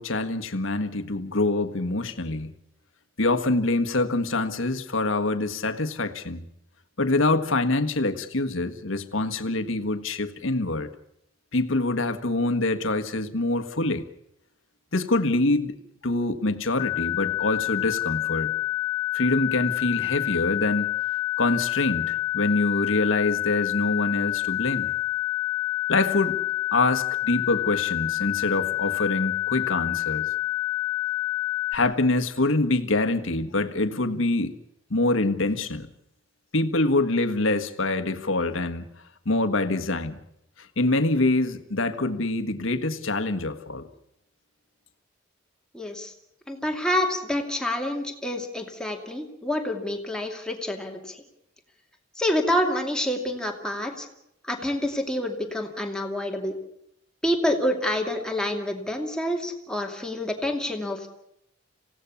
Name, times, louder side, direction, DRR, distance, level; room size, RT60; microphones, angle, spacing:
voice 1, 0.0-2.5 3.2-6.4 7.0-10.9 11.5-14.0 14.9-15.7 16.0-18.6 19.1-20.9 21.4-24.9 25.9-26.4 26.7-30.3 31.7-34.6 34.9-35.9 36.5-38.9 39.2-40.2 40.8-43.9, left 2 dB, 75° left, 7 dB, 1.5 m, -25 dB
sound 1, 16.8-31.7, left 19 dB, 40° left, 1.3 m, -28 dB
voice 2, 45.7-46.1 46.5-51.2 52.2-54.1 54.4-56.5 57.2-61.2, left 1 dB, 5° left, 2 dB, 2.5 m, -27 dB
27.0 x 17.0 x 7.1 m, 0.77 s
head